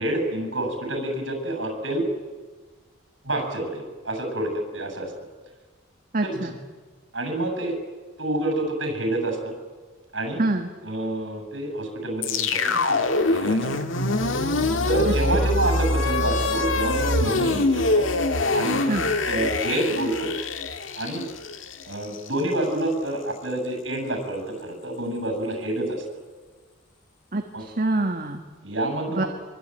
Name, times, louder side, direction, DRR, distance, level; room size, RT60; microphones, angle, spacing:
voice 1, 0.0-2.0 3.2-5.1 6.2-6.5 7.1-7.8 8.2-9.5 10.1-10.4 10.8-13.8 14.8-18.1 18.5-19.0 19.3-20.3 21.0-21.2 21.9-26.0 27.5-27.6 28.6-29.3, right 1 dB, 65° right, 4 dB, 8.0 m, -28 dB
voice 2, 6.1-6.6 10.4-10.7 15.1-15.5 18.9-19.1 27.3-28.4 29.1-29.2, right 2 dB, 45° right, 4 dB, 1.7 m, -26 dB
sound 1, 12.2-22.4, left 2 dB, 80° left, 1.7 m, -24 dB
25.0 x 24.0 x 9.3 m, 1.4 s
head